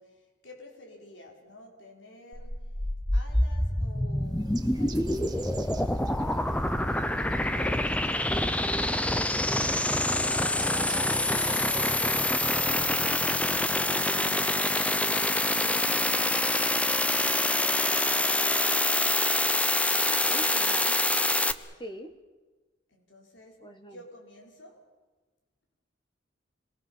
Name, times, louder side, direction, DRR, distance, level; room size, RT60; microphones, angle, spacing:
voice 1, 0.0-2.7 3.1-13.1 21.4-21.7 22.9-24.9, equal, 75° left, 1 dB, 5.7 m, -51 dB
sound 1, 2.3-21.5, left 1 dB, 5° left, 0.8 m, -26 dB
Bird, 4.2-13.9, right 4 dB, 20° right, 2.0 m, -49 dB
voice 2, 20.0-21.0 21.8-22.1 23.6-24.0, equal, 25° left, 6 dB, 1.4 m, -41 dB
28.5 x 22.0 x 7.3 m, 1.3 s
head